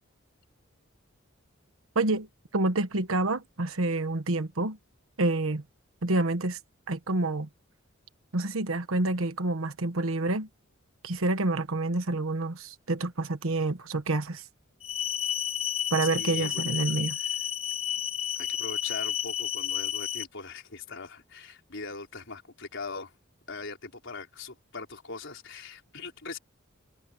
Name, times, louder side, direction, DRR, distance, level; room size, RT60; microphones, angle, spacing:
voice 1, 1.9-2.3 2.5-4.8 5.2-5.6 6.0-6.6 6.9-7.5 8.3-10.5 11.0-14.4 15.9-17.2, right 2 dB, 90° right, 1.3 m, -28 dB
sound 1, 14.8-20.2, left 10 dB, 30° left, 0.8 m, -31 dB
voice 2, 16.1-17.3 18.4-23.1 23.5-26.4, left 3 dB, 65° left, 4.9 m, -41 dB
head